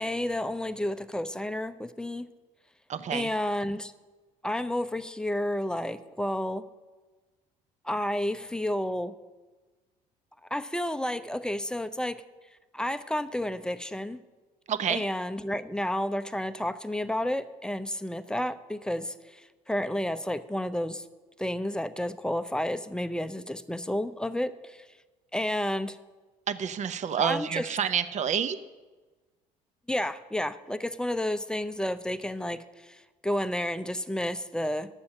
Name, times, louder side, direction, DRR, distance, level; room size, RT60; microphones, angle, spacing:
voice 1, 0.0-2.3 3.1-3.9 4.4-6.6 7.8-9.1 10.5-12.2 12.7-14.2 14.9-21.0 21.4-24.9 25.3-26.0 27.2-27.7 29.9-34.9, left 1 dB, 5° left, 11 dB, 0.6 m, -31 dB
voice 2, 2.9-3.3 14.7-15.0 26.5-28.6, right 8 dB, 40° right, 13 dB, 0.7 m, -28 dB
10.5 x 7.0 x 6.4 m, 1.3 s
hypercardioid pair, 65°, 18 cm